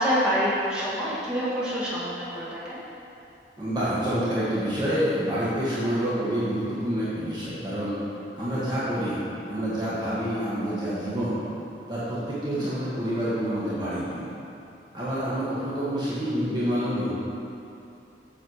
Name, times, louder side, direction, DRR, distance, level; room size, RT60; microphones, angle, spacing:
voice 1, 0.0-2.8 8.1-8.3 12.5-12.9, equal, 5° right, -10 dB, 1.8 m, -27 dB
voice 2, 3.6-8.0 8.3-11.4 11.9-14.3 14.9-17.1, equal, 25° right, -10 dB, 1.5 m, -27 dB
7.8 x 6.7 x 4.8 m, 2.9 s
head